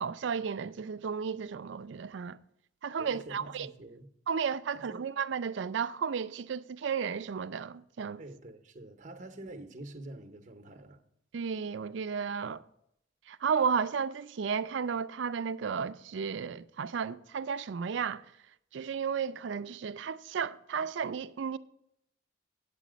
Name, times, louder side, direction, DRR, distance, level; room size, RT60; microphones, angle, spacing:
voice 1, 0.0-2.4 2.8-3.7 4.3-8.2 11.3-12.6 13.3-18.2 18.7-21.6, right 6 dB, 70° right, 0.4 m, -33 dB
voice 2, 3.0-4.1 4.7-5.0 8.2-11.0, right 1 dB, 40° right, 0.8 m, -46 dB
8.5 x 8.4 x 5.1 m
head